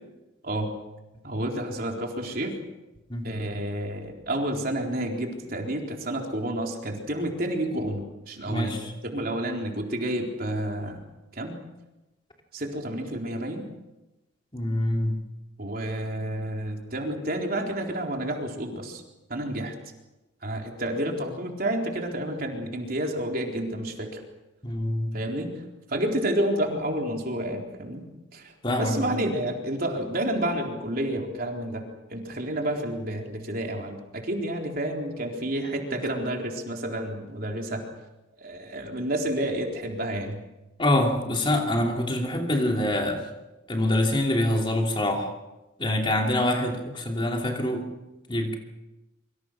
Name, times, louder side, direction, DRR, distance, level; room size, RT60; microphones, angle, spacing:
voice 1, 1.2-2.6 3.2-8.7 9.0-11.0 11.3-11.6 12.5-13.6 15.6-19.0 19.3-19.7 20.4-24.2 25.1-25.5 25.9-28.0 28.3-37.8 38.4-40.4 46.4-46.5, right 1 dB, 45° right, 1 dB, 4.0 m, -30 dB
voice 2, 8.5-8.9 14.5-15.2 24.6-25.1 28.6-29.1 40.8-43.2 43.7-45.3 45.8-47.8 48.3-48.6, left 1 dB, 25° left, 1 dB, 2.9 m, -25 dB
26.5 x 24.5 x 6.2 m, 1.0 s
head